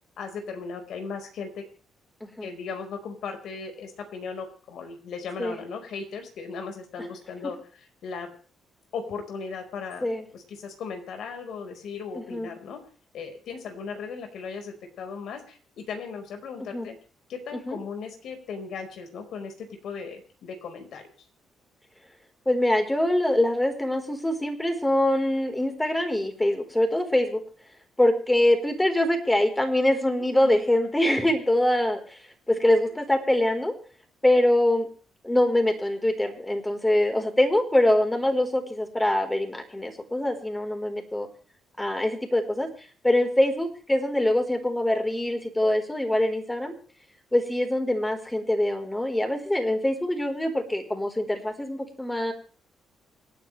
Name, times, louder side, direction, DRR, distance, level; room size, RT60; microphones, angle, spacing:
voice 1, 0.2-1.6 2.4-7.6 8.0-8.3 8.9-10.1 10.3-12.8 13.1-16.9 17.3-21.0 30.4-30.6, left 5 dB, 70° left, 5 dB, 4.9 m, -37 dB
voice 2, 2.2-2.5 5.4-5.6 7.0-7.1 10.0-10.3 12.1-12.5 16.7-16.9 17.7-17.8 22.5-27.4 28.0-32.2 32.5-33.7 34.2-34.9 35.2-41.3 41.8-42.7 43.0-46.7 47.3-52.3, left 1 dB, 10° left, 5 dB, 4.2 m, -24 dB
27.5 x 9.5 x 3.4 m, 0.42 s
cardioid pair, 90°, 0 cm